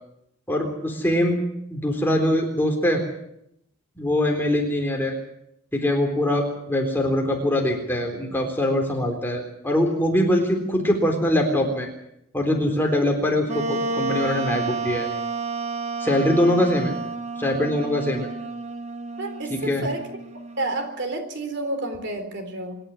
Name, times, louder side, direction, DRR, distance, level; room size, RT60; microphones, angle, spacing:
voice 1, 0.5-1.4 1.7-3.0 4.0-5.2 5.7-11.9 12.3-15.1 16.0-16.9 17.4-18.3 19.5-19.9, left 1 dB, 10° left, 1 dB, 3.8 m, -23 dB
Wind instrument woodwind instrument, 13.5-20.9, right 3 dB, 30° right, 1.5 m, -30 dB
voice 2, 19.2-20.1 20.6-22.8, right 2 dB, 50° right, 7 dB, 3.7 m, -30 dB
26.5 x 11.5 x 10.0 m, 0.78 s
head